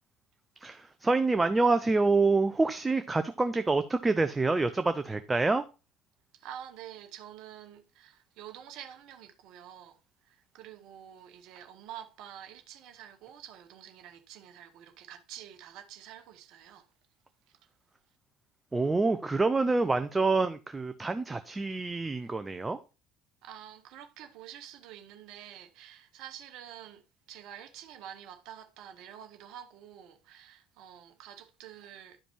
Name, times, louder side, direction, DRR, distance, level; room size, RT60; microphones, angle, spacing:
voice 1, 0.6-5.7 18.7-22.8, right 3 dB, 15° right, 0.6 m, -27 dB
voice 2, 6.3-16.9 17.5-17.7 23.4-32.2, right 10 dB, 55° right, 1.0 m, -48 dB
11.5 x 5.1 x 3.0 m
figure-of-eight pair, 60°, 0 cm